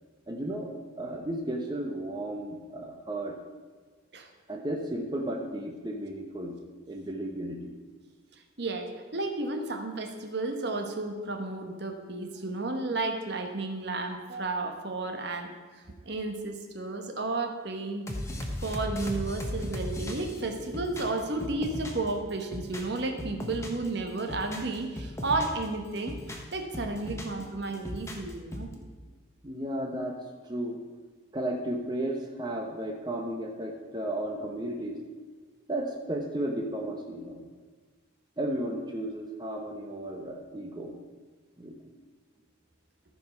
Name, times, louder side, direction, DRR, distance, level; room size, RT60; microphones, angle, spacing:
voice 1, 0.3-3.4 4.5-6.6 6.9-7.7 29.4-30.2 30.5-30.8 31.3-35.0 35.7-37.4 38.4-40.9 41.6-41.8, right 1 dB, 20° right, 1 dB, 0.9 m, -34 dB
voice 2, 8.6-18.1 18.6-28.7, right 2 dB, 55° right, 4 dB, 1.1 m, -33 dB
sound 1, 18.1-22.1 22.4-23.9 24.2-25.6 26.0-27.4 27.7-28.7, left 1 dB, 15° left, 1.0 m, -37 dB
14.0 x 4.8 x 5.8 m, 1.5 s
head